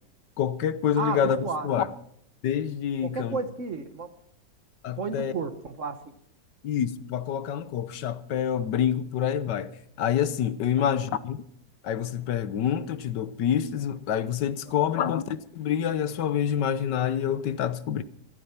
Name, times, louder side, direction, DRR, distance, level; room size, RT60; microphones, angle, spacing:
voice 1, 0.4-1.9 2.4-3.4 4.8-5.3 6.6-9.7 10.0-11.4 11.8-18.0, left 9 dB, 75° left, 1.4 m, -27 dB
voice 2, 1.0-1.7 3.0-4.1 5.0-6.0 10.8-10.9 14.7-15.1, right 4 dB, 50° right, 1.2 m, -33 dB
15.5 x 14.0 x 5.8 m
omnidirectional pair, 1.9 m